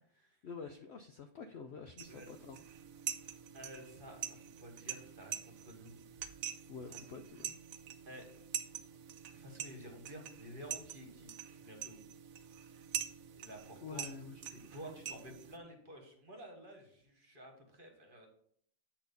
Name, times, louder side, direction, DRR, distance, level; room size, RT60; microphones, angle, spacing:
voice 1, 0.4-2.6 2.9-3.4 6.7-7.6 13.8-14.7, left 5 dB, 80° left, 7 dB, 0.5 m, -48 dB
sound 1, 2.0-15.6, right 9 dB, 65° right, 1.0 m, -45 dB
voice 2, 3.5-6.0 6.9-7.0 8.1-8.3 9.3-11.3 11.6-12.0 13.3-14.0 14.7-18.3, equal, 35° right, 2 dB, 1.5 m, -51 dB
8.7 x 4.2 x 5.3 m, 0.63 s
omnidirectional pair, 1.8 m